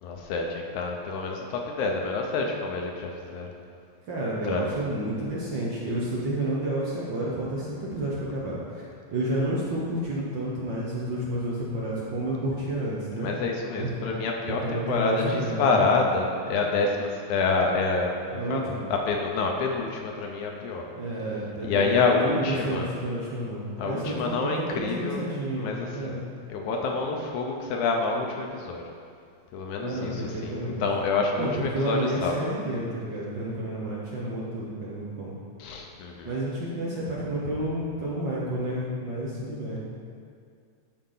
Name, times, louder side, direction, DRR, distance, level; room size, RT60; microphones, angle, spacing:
voice 1, 0.0-3.5 4.4-4.8 13.2-18.1 18.5-20.9 21.6-22.9 23.8-25.2 25.6-26.2 26.5-28.8 29.5-32.5 35.6-36.3, left 4 dB, 80° left, 1 dB, 2.1 m, -27 dB
voice 2, 4.1-8.8 9.1-13.3 13.8-14.1 14.5-15.8 18.3-18.8 21.0-26.2 29.8-30.8 31.4-35.3 36.2-39.8, right 1 dB, 65° right, -5 dB, 1.1 m, -30 dB
13.0 x 4.9 x 3.9 m, 2.2 s
omnidirectional pair, 3.5 m